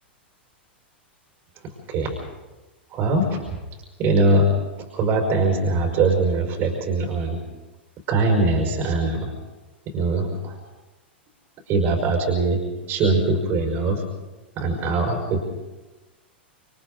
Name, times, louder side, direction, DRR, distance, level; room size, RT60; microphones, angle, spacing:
voice 1, 1.6-2.2 2.9-3.4 4.0-4.5 4.9-7.4 8.1-9.3 9.9-10.6 11.7-12.6 12.9-14.0 14.6-15.4, right 2 dB, 40° right, 1 dB, 5.4 m, -22 dB
28.0 x 28.0 x 4.0 m, 1.2 s
figure-of-eight pair, 95°, 6 cm